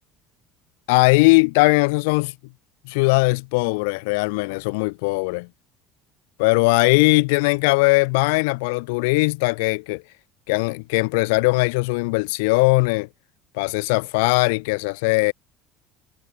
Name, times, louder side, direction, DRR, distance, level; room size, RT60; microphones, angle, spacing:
voice 1, 0.9-2.3 2.9-5.5 6.4-10.0 10.5-13.1 13.5-15.3, left 28 dB, 80° left, 0.4 m, -19 dB
supercardioid pair, 85°, 0 cm